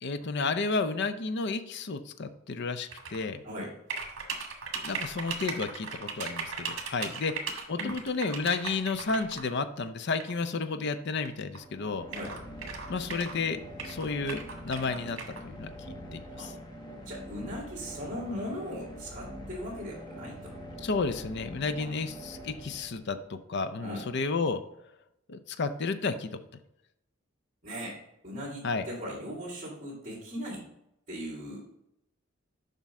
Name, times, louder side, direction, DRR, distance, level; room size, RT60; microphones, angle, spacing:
voice 1, 0.0-3.4 4.8-7.3 7.7-12.1 12.9-15.7 16.1-16.5 20.8-24.6 25.3-26.3 28.6-28.9, left 4 dB, 55° left, 10 dB, 0.6 m, -32 dB
sound 1, 2.9-3.2 3.9-9.4 10.2-10.3 11.2-11.3 11.5-11.6 12.1-13.4 13.8-15.4, right 5 dB, 65° right, 1.5 m, -37 dB
sound 2, 11.5-23.4, equal, 20° left, 1.1 m, -44 dB
voice 2, 17.0-20.4 21.8-21.9 23.8-24.0 27.6-28.0 28.2-30.6 31.1-31.6, equal, 40° right, -8 dB, 2.3 m, -38 dB
7.3 x 5.5 x 3.6 m, 0.81 s
head